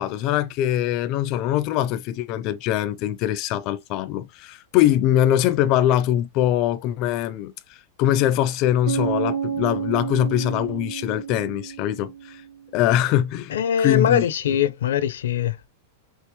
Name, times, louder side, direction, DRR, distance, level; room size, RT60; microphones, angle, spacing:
voice 1, 0.0-12.4 12.7-14.2, left 12 dB, 35° left, 0.5 m, -22 dB
Bass guitar, 8.9-12.5, right 7 dB, 65° right, 1.4 m, -29 dB
voice 2, 13.5-15.7, left 9 dB, 90° left, 0.7 m, -22 dB
5.3 x 3.4 x 3.0 m
supercardioid pair, 165°, 0 cm